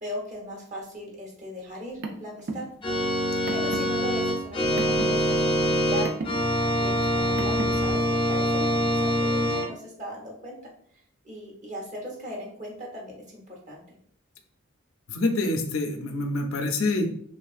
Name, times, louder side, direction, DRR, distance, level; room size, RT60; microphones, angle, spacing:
voice 1, 0.0-2.7 3.5-10.7 11.2-14.0, equal, 35° right, -2 dB, 0.9 m, -38 dB
Car, 1.7-7.9, right 2 dB, 55° right, 0.4 m, -37 dB
Organ, 2.8-9.7, equal, 25° left, 0.5 m, -24 dB
voice 2, 15.1-17.1, left 2 dB, 90° left, 4 dB, 0.5 m, -26 dB
3.2 x 2.4 x 2.4 m, 0.63 s
head